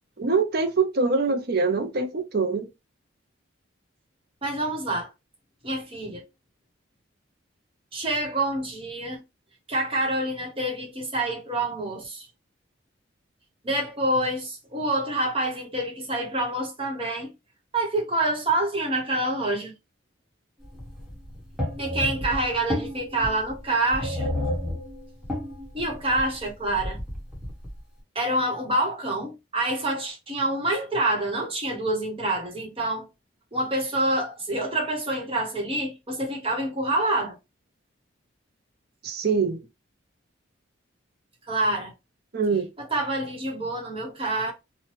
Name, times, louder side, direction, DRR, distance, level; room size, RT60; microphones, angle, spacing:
voice 1, 0.2-2.7 39.0-39.6 42.3-42.7, right 4 dB, 50° right, 0.6 m, -24 dB
voice 2, 4.4-5.1 5.6-6.2 7.9-9.2 9.7-12.3 13.6-17.3 17.7-19.7 21.8-24.3 25.7-27.0 28.1-33.1 33.5-37.4 41.5-41.9 42.8-44.5, right 1 dB, 25° right, 1.0 m, -27 dB
sound 1, 20.6-27.8, left 1 dB, ahead, 1.1 m, -32 dB
2.9 x 2.2 x 3.1 m
head